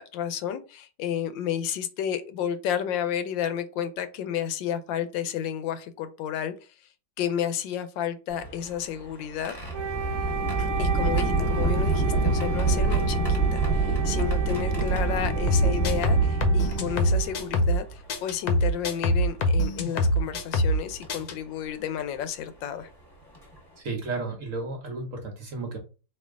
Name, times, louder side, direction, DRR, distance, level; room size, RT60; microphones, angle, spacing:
voice 1, 0.0-6.5 7.2-9.5 10.6-22.9, left 9 dB, 80° left, 11 dB, 1.3 m, -31 dB
sound 1, 8.3-17.6 18.5-18.6 20.0-20.3 21.0-21.2 22.8-22.9 23.3-23.6, right 3 dB, 15° left, 1.3 m, -26 dB
Wind instrument woodwind instrument, 9.7-17.8, right 6 dB, 80° right, 1.5 m, -35 dB
sound 2, 15.5-17.8 18.1-20.8 21.1-21.3, equal, 60° left, 1.1 m, -24 dB
voice 2, 23.8-25.8, right 3 dB, 50° right, 3 dB, 1.1 m, -33 dB
4.4 x 2.8 x 3.6 m, 0.33 s
omnidirectional pair, 2.1 m